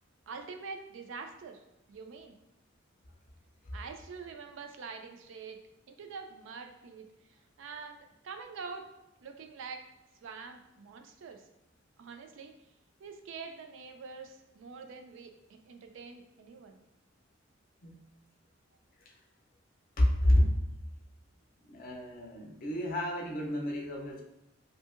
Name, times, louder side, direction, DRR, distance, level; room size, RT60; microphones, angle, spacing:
voice 1, 0.3-1.6 1.9-2.4 3.7-5.6 5.9-8.0 8.2-8.9 9.2-9.8 10.2-11.5 12.0-12.5 13.0-15.3 15.7-16.8, right 5 dB, 65° right, 5 dB, 0.3 m, -45 dB
voice 2, 20.0-20.6 21.7-24.2, left 1 dB, 45° left, 0 dB, 0.5 m, -29 dB
2.7 x 2.7 x 2.4 m, 0.88 s
head